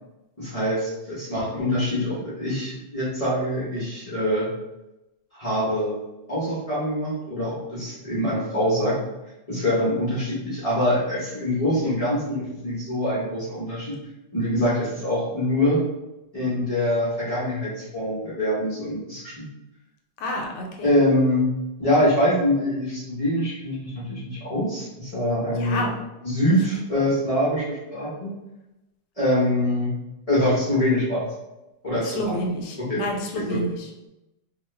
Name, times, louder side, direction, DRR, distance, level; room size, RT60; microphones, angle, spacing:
voice 1, 0.4-4.5 5.3-6.0 6.3-9.0 9.5-13.9 14.3-15.8 16.3-19.3 20.8-21.4 21.8-25.8 26.2-28.3 29.2-29.9 30.3-31.3 31.8-32.3 32.9-33.0 33.5-33.6, left 1 dB, 45° left, -9 dB, 0.4 m, -24 dB
voice 2, 20.2-20.9 25.6-25.9 32.0-34.1, left 1 dB, 75° left, 1 dB, 1.1 m, -29 dB
3.0 x 2.3 x 3.2 m, 0.96 s
omnidirectional pair, 2.1 m